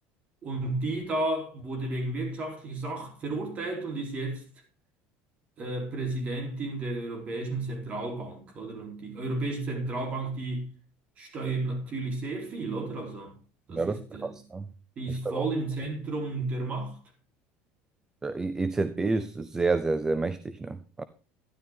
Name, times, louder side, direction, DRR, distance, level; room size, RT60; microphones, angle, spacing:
voice 1, 0.4-4.4 5.6-10.7 11.2-13.3 13.7-14.4 15.0-17.0, right 2 dB, 30° right, 3.9 m, -32 dB
voice 2, 13.7-14.7 15.3-15.5 18.2-21.0, right 3 dB, 10° right, 0.5 m, -29 dB
12.5 x 11.0 x 3.8 m
cardioid pair, 160°, 5 cm